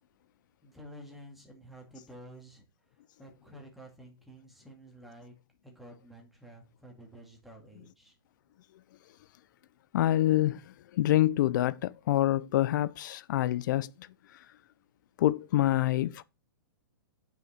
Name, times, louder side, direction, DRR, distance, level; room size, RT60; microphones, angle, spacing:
voice 1, 0.6-2.7 3.2-5.3 5.6-8.2, right 1 dB, ahead, 2.4 m, -51 dB
voice 2, 9.9-10.6 10.9-13.9 15.2-16.2, left 14 dB, 50° left, 0.6 m, -26 dB
9.0 x 5.8 x 4.4 m
hypercardioid pair, 145°, 13 cm